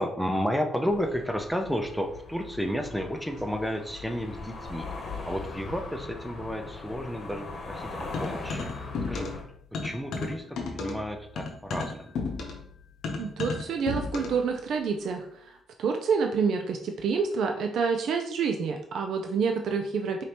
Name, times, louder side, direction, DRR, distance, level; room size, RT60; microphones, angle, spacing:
voice 1, 0.0-4.9 5.3-8.7 9.1-9.3 9.8-12.0, equal, ahead, 4 dB, 0.5 m, -32 dB
sound 1, 0.8-9.4, left 3 dB, 50° left, 0.9 m, -40 dB
sound 2, 8.1-9.5 9.7-14.5, left 4 dB, 75° left, 0.7 m, -33 dB
voice 2, 13.2-20.2, right 5 dB, 70° right, 4 dB, 0.4 m, -28 dB
4.9 x 2.7 x 2.9 m, 0.70 s
cardioid pair, 90°, 0 cm